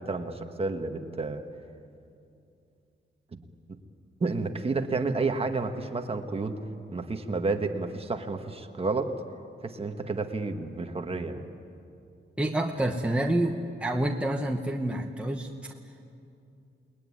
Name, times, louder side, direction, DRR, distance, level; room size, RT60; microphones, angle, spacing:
voice 1, 0.0-1.4 4.2-6.6 6.9-9.2 9.6-11.4, right 3 dB, 30° right, 5 dB, 1.5 m, -30 dB
voice 2, 12.4-15.7, right 1 dB, 5° right, 2 dB, 1.0 m, -28 dB
29.0 x 20.5 x 9.9 m, 2.6 s
wide cardioid pair, 170°, 20 cm